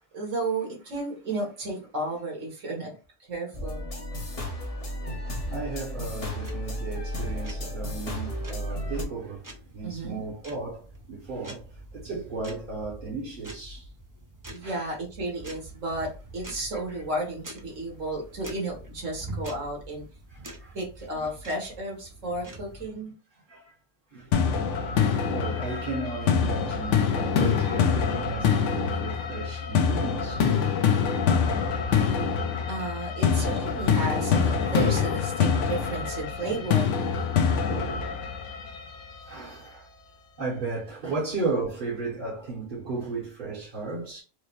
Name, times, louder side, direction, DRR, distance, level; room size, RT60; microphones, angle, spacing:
voice 1, 0.1-2.9 3.3-3.9 9.8-10.2 14.5-20.0 20.7-23.1 32.7-36.9, right 2 dB, 80° right, 1.8 m, -33 dB
sound 1, 3.5-9.0, left 1 dB, 35° left, 0.7 m, -33 dB
voice 2, 5.5-9.5 9.7-13.9 14.6-14.9 16.7-17.0 20.3-20.8 21.1-21.3 23.5-23.7 24.1-24.4 25.3-31.1 32.1-32.2 32.5-32.6 35.4-35.6 36.4-36.7 37.6-38.2 39.2-39.9 40.4-44.2, right 3 dB, 40° right, 1.2 m, -35 dB
sound 2, 6.3-22.9, right 1 dB, 25° right, 0.5 m, -45 dB
sound 3, 24.3-39.3, left 6 dB, 70° left, 0.9 m, -25 dB
4.8 x 2.0 x 3.0 m
omnidirectional pair, 1.3 m